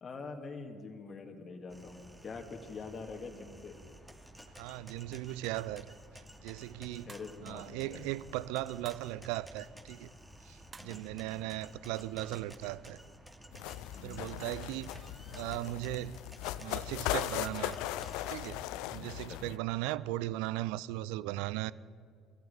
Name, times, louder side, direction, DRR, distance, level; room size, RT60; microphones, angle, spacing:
voice 1, 0.0-3.8 7.0-8.1 10.7-11.5 13.9-14.3 18.9-19.5, left 4 dB, 40° left, 2.4 m, -45 dB
sound 1, 1.7-18.5, equal, 5° right, 2.8 m, -53 dB
voice 2, 4.6-6.0 6.4-7.1 7.4-10.1 10.4-13.0 14.0-15.0 15.3-16.2 16.6-17.8 18.3-18.7 18.9-21.7, right 16 dB, 70° right, 0.5 m, -37 dB
sound 2, 7.1-7.5 8.8-9.2 10.7-11.1 12.5-12.6, right 4 dB, 30° right, 0.9 m, -53 dB
sound 3, 13.5-19.6, left 14 dB, 70° left, 0.6 m, -38 dB
21.0 x 14.5 x 8.8 m
hypercardioid pair, 60°, 0 cm